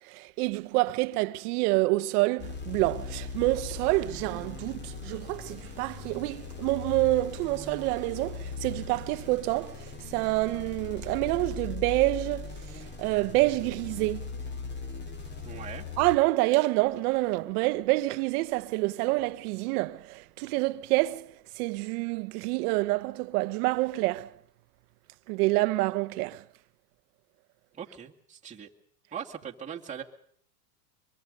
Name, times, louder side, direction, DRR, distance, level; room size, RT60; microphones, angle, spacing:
voice 1, 0.0-14.3 16.0-24.4 25.3-26.4, right 20 dB, 65° right, 1.0 m, -27 dB
sound 1, 2.4-16.2, left 4 dB, 20° left, 2.6 m, -39 dB
voice 2, 15.4-15.9 27.7-28.7 29.1-30.0, right 8 dB, 15° right, 2.2 m, -40 dB
24.0 x 23.0 x 5.3 m
supercardioid pair, 120°, 49 cm